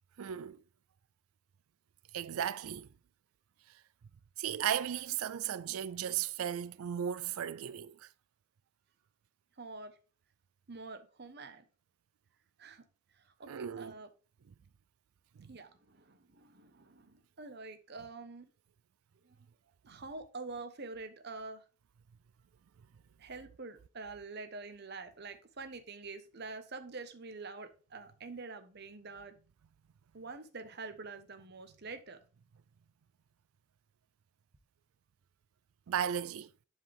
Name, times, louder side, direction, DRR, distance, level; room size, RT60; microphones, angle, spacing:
voice 1, 0.2-0.6 2.1-2.9 4.4-8.1 13.5-13.9 14.5-14.6 15.4-15.5 35.9-36.5, right 9 dB, 90° right, 0.4 m, -35 dB
voice 2, 9.6-9.9 10.7-11.6 12.6-12.8 13.4-14.1 15.5-18.5 19.2-19.3 19.9-21.6 23.2-29.4 30.1-32.2, right 3 dB, 50° right, 1.0 m, -46 dB
11.0 x 4.7 x 3.4 m
head